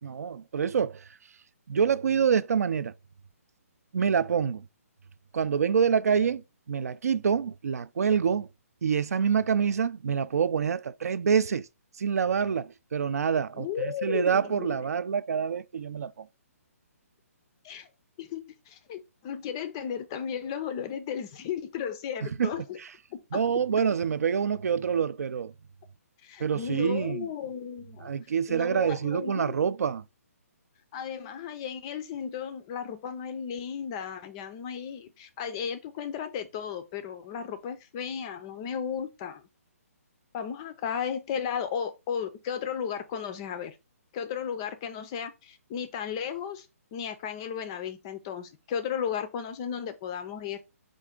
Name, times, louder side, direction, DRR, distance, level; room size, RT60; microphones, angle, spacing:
voice 1, 0.0-1.0 1.7-2.9 3.9-4.6 5.3-8.5 8.8-11.7 12.0-16.3 22.4-22.5 23.3-25.5 26.4-27.3 28.0-30.0, right 7 dB, 80° right, 0.4 m, -26 dB
voice 2, 13.6-14.8 17.6-17.9 18.2-22.8 23.1-23.4 26.2-28.1 28.5-29.6 30.9-39.4 40.3-43.8 44.1-50.6, left 8 dB, 20° left, 0.4 m, -35 dB
4.5 x 2.5 x 3.6 m
hypercardioid pair, 165°, 8 cm